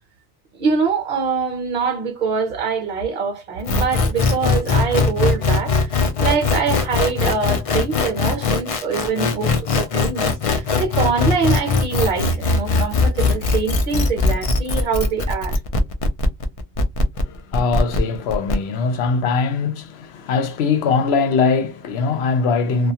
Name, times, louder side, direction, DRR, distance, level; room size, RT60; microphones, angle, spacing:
voice 1, 0.6-15.6, right 5 dB, 55° right, 0.8 m, -24 dB
sound 1, 3.6-18.5, left 3 dB, 55° left, 0.4 m, -20 dB
voice 2, 17.2-22.9, left 5 dB, 75° left, 0.8 m, -21 dB
2.3 x 2.3 x 2.7 m
omnidirectional pair, 1.1 m